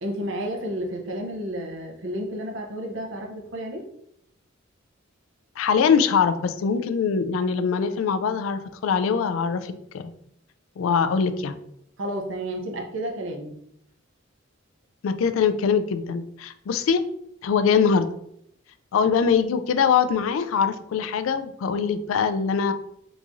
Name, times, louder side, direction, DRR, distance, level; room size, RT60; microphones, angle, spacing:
voice 1, 0.0-3.8 12.0-13.5, right 1 dB, 65° right, 2 dB, 0.6 m, -31 dB
voice 2, 5.6-10.1 10.8-11.6 15.0-17.0 17.4-18.1 18.9-22.7, left 6 dB, 80° left, 11 dB, 0.3 m, -23 dB
3.6 x 3.0 x 2.5 m, 0.73 s
head